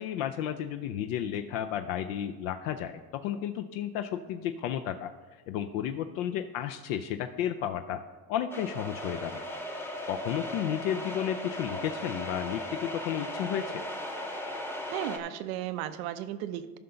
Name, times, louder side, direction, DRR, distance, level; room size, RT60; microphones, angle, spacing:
voice 1, 0.0-5.1 5.5-8.0 8.3-9.4 10.1-13.8, left 10 dB, 85° left, 7 dB, 0.6 m, -32 dB
sound 1, 8.5-15.2, left 1 dB, 5° left, 0.8 m, -37 dB
voice 2, 14.9-16.8, right 12 dB, 90° right, 11 dB, 0.7 m, -35 dB
13.5 x 5.7 x 3.9 m, 1.3 s
supercardioid pair, 125°, 40 cm